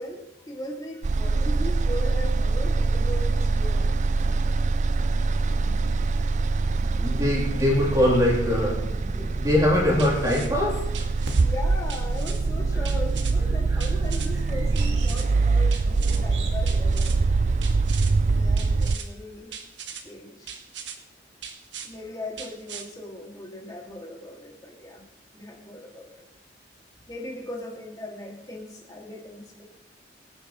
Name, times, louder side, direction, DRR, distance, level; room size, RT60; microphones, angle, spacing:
voice 1, 0.0-3.9 11.4-17.2 18.3-19.5 19.9-20.5 21.8-25.0 25.3-26.2 27.1-29.6, left 1 dB, 20° left, 0 dB, 2.4 m, -38 dB
sound 1, 1.0-19.0, right 3 dB, 40° right, 0.4 m, -24 dB
voice 2, 6.9-10.9, left 1 dB, 20° right, -4 dB, 3.5 m, -23 dB
sound 2, 10.0-10.5 10.9-11.4 11.9-12.4 12.8-13.3 13.8-14.3 14.7-15.2 15.7-16.2 16.7-17.2 17.6-18.1 18.6-19.1 19.5-20.0 20.5-21.0 21.4-21.9 22.4-22.8, right 8 dB, 75° right, 1.3 m, -39 dB
sound 3, 11.2-16.6, right 2 dB, 90° right, 2.2 m, -41 dB
22.5 x 9.5 x 3.2 m, 0.86 s
head